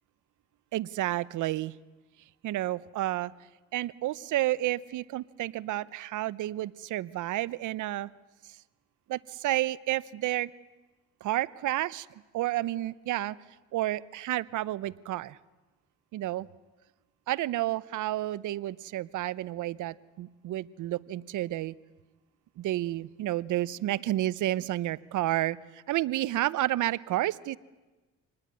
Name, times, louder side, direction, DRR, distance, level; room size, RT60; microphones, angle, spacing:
voice 1, 0.7-1.7 2.4-3.3 3.7-8.1 9.1-10.5 11.2-12.1 12.3-13.4 13.7-15.4 16.1-16.5 17.3-21.8 22.6-27.6, right 15 dB, 80° right, 20 dB, 0.8 m, -30 dB
26.0 x 19.5 x 9.7 m, 1.2 s
cardioid pair, 90°, 30 cm